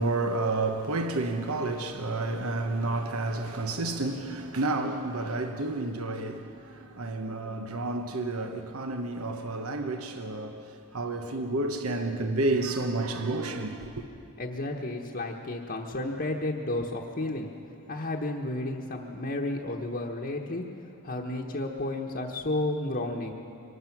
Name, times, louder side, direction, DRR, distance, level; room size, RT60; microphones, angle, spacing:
voice 1, 0.0-14.0, right 2 dB, 75° right, 1.1 m, -30 dB
voice 2, 14.4-17.5 17.9-20.6 21.0-23.3, left 2 dB, 45° left, 1.2 m, -32 dB
24.0 x 19.5 x 6.0 m
head